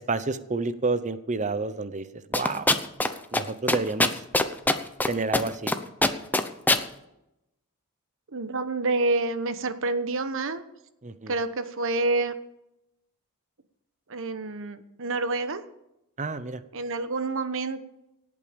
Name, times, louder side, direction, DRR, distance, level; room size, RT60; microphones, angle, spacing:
voice 1, 0.0-2.0 2.3-2.7 3.3-4.1 5.1-5.7 11.0-11.3 16.2-16.6, right 3 dB, 35° right, 13 dB, 0.8 m, -29 dB
sound 1, 2.3-3.1 3.3-3.4 3.7-5.1 5.3-5.7 6.0-6.8, left 2 dB, 10° left, 0.8 m, -21 dB
voice 2, 8.3-10.6 11.3-12.3 14.1-15.6 16.7-17.8, right 3 dB, 60° right, 11 dB, 1.1 m, -28 dB
18.5 x 8.7 x 5.2 m, 0.86 s
head